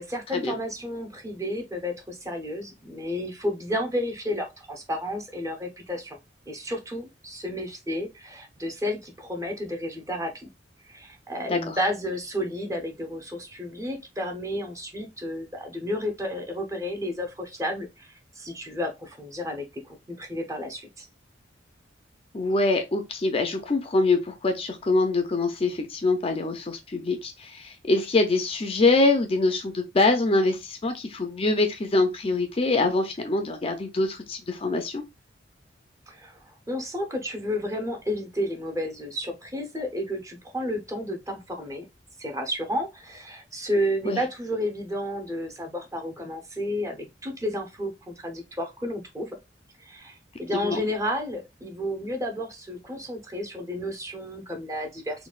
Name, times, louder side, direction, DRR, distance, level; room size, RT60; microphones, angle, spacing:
voice 1, 0.0-6.2 6.5-10.5 10.8-21.1 36.1-41.9 42.2-49.3 49.8-55.3, equal, 15° right, 0.7 m, -32 dB
voice 2, 22.3-35.0 44.0-44.2 50.6-50.8, left 3 dB, 30° left, 0.4 m, -24 dB
4.0 x 2.2 x 2.4 m
head